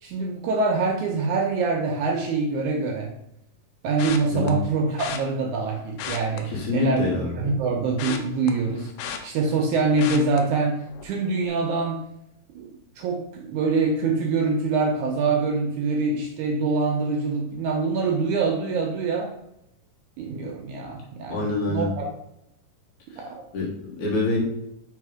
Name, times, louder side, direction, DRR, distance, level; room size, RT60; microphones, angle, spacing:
voice 1, 0.0-3.1 3.8-7.1 7.4-8.9 9.2-12.0 12.6-12.7 13.0-19.4 20.2-22.1 23.2-23.4, right 4 dB, 80° right, 1 dB, 1.8 m, -25 dB
sound 1, 4.0-4.5 5.0-5.2 5.9-7.1 7.4-9.7 10.0-10.4 10.9-11.1 11.4-11.5, left 8 dB, 85° left, 2.3 m, -35 dB
voice 2, 6.5-7.4 21.3-21.9 23.1-23.2 23.5-24.4, left 3 dB, 70° left, -2 dB, 2.5 m, -26 dB
4.9 x 4.2 x 4.8 m, 0.81 s
omnidirectional pair, 3.9 m